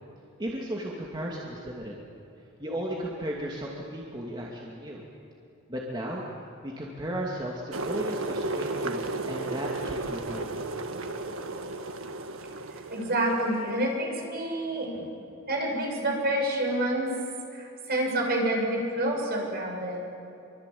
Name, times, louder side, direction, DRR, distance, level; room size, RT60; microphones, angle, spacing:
voice 1, 0.4-2.0 2.6-5.0 5.7-6.2 6.6-10.6, equal, 20° right, -3 dB, 2.7 m, -35 dB
sound 1, 7.7-13.8, right 2 dB, 85° right, 1.6 m, -34 dB
voice 2, 12.9-15.1 15.5-17.1 17.5-20.1, right 1 dB, 50° right, 0 dB, 7.0 m, -28 dB
26.0 x 24.5 x 8.6 m, 2.7 s
head